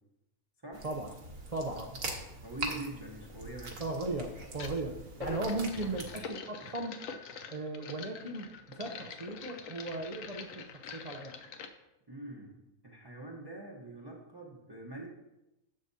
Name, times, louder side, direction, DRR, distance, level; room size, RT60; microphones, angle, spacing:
sound 1, 0.7-6.2, right 2 dB, 65° right, 1.7 m, -42 dB
voice 1, 0.8-1.1 1.5-2.0 3.8-7.0 7.5-10.6 10.9-11.4, right 2 dB, 40° right, 3 dB, 0.5 m, -37 dB
voice 2, 2.4-3.8 12.1-15.1, right 2 dB, 20° right, -2 dB, 0.9 m, -44 dB
sound 2, 3.2-3.4 4.5-4.8 5.1-11.7, left 5 dB, 70° left, 1.1 m, -45 dB
11.0 x 7.6 x 2.7 m, 0.93 s
omnidirectional pair, 1.5 m